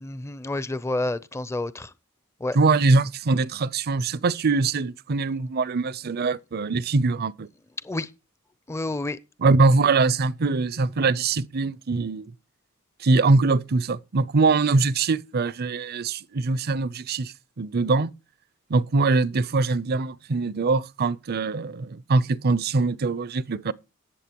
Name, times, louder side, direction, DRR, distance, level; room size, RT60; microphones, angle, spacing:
voice 1, 0.0-1.9 2.4-2.6 7.8-8.1 8.7-9.2, left 2 dB, 15° left, 0.5 m, -29 dB
voice 2, 2.5-7.5 9.4-12.3 13.0-18.1 18.7-23.7, right 3 dB, 50° right, 0.5 m, -23 dB
18.5 x 7.3 x 2.9 m
head